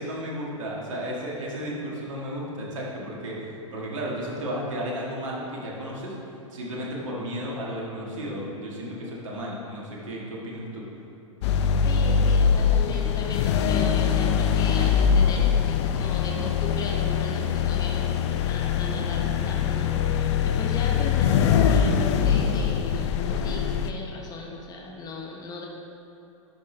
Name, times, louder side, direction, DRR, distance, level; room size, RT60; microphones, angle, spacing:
voice 1, 0.0-6.1 6.5-10.9, equal, 70° right, -4 dB, 1.8 m, -33 dB
sound 1, 11.4-23.9, left 7 dB, 55° left, 0.5 m, -23 dB
voice 2, 11.8-25.7, left 3 dB, 20° left, -1 dB, 1.0 m, -37 dB
10.5 x 6.0 x 3.3 m, 3.0 s
hypercardioid pair, 105°, 17 cm